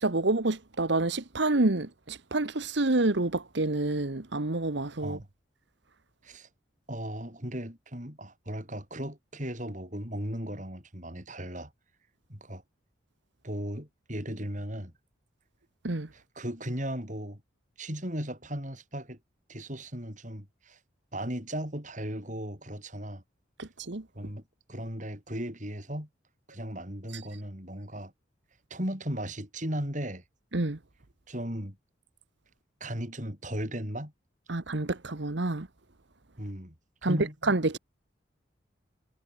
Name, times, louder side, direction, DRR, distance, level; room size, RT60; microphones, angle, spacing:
voice 1, 0.0-5.2 15.8-16.1 23.6-24.0 30.5-30.8 34.5-35.7 37.0-37.2 37.5-37.8, right 2 dB, 60° right, 1.3 m, -28 dB
voice 2, 6.9-11.7 12.3-12.6 13.4-14.9 16.1-17.4 17.8-19.2 19.5-20.8 21.1-23.2 24.1-24.4 24.7-26.1 26.5-28.1 28.7-30.2 31.3-31.8 32.8-34.1 36.4-36.7 37.0-37.4, right 1 dB, 40° right, 7.6 m, -36 dB
head